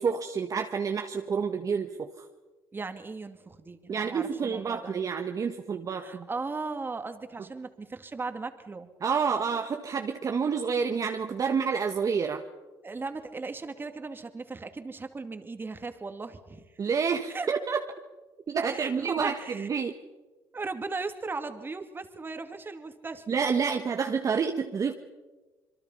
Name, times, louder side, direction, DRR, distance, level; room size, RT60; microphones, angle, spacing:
voice 1, 0.0-2.1 3.9-6.3 9.0-12.4 16.8-17.9 18.5-19.9 23.3-24.9, right 6 dB, 40° right, 4 dB, 1.5 m, -28 dB
voice 2, 2.7-5.0 6.0-8.9 12.8-16.7 17.3-17.5 18.6-19.7 20.5-23.2, right 3 dB, 25° right, 8 dB, 2.3 m, -37 dB
26.5 x 22.5 x 5.6 m, 1.2 s
supercardioid pair, 85°, 9 cm